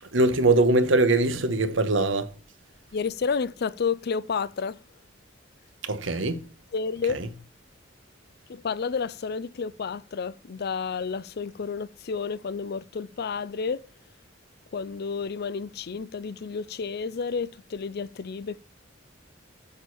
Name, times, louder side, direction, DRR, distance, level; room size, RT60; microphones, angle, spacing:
voice 1, 0.0-2.3 5.8-6.4 7.1-7.3, right 2 dB, 70° right, 1.2 m, -22 dB
voice 2, 2.9-4.8 6.7-7.2 8.5-13.8 14.7-18.6, left 5 dB, 55° left, 0.5 m, -30 dB
7.1 x 6.5 x 7.0 m
head